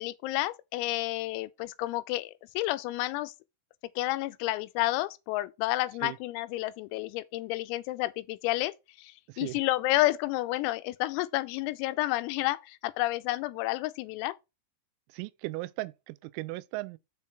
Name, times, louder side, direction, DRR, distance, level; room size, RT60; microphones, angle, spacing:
voice 1, 0.0-3.3 4.0-14.4, left 17 dB, 90° left, 3.4 m, -30 dB
voice 2, 9.3-9.6 15.1-17.0, right 21 dB, 90° right, 3.3 m, -37 dB
7.0 x 5.6 x 4.7 m
omnidirectional pair, 6.0 m